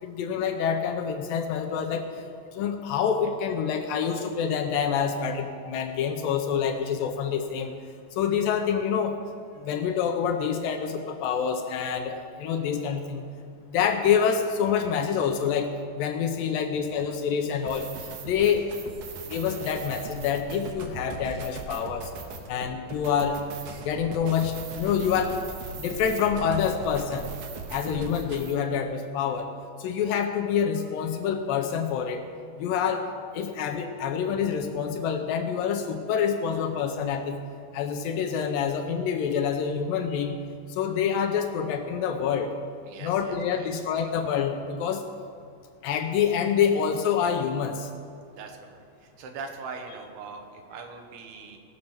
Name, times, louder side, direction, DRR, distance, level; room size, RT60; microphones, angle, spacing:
voice 1, 0.0-2.1 2.5-7.8 8.1-9.2 9.6-13.2 13.7-17.9 18.2-18.7 19.3-22.1 22.5-23.4 23.8-25.4 25.8-27.3 27.7-29.5 29.8-32.2 32.6-33.1 33.3-37.4 37.7-40.4 40.7-42.5 43.0-45.0 45.8-47.9, left 7 dB, 80° left, 4 dB, 2.3 m, -27 dB
sound 1, 17.6-28.5, right 4 dB, 65° right, 2.1 m, -39 dB
voice 2, 27.7-28.0 42.9-43.7 48.3-51.6, right 4 dB, 90° right, 4 dB, 3.2 m, -41 dB
18.5 x 6.5 x 5.8 m, 2.3 s
omnidirectional pair, 4.4 m